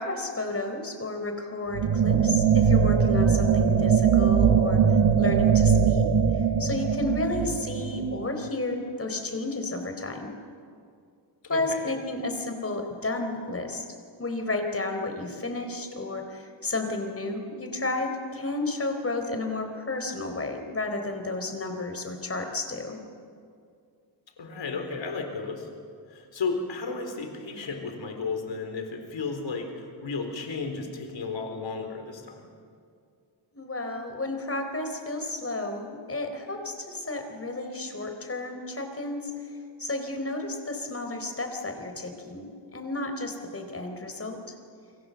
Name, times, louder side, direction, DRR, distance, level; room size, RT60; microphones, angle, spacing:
voice 1, 0.0-4.8 5.2-6.1 6.3-10.3 11.5-13.9 14.2-23.0 33.5-44.4, left 2 dB, 30° left, 5 dB, 4.2 m, -32 dB
sound 1, 1.7-8.5, right 7 dB, 75° right, 1.5 m, -21 dB
voice 2, 11.4-11.9 24.4-25.7 26.1-32.3, left 4 dB, 75° left, 4 dB, 4.2 m, -33 dB
29.5 x 24.0 x 7.9 m, 2.3 s
wide cardioid pair, 110°, 45 cm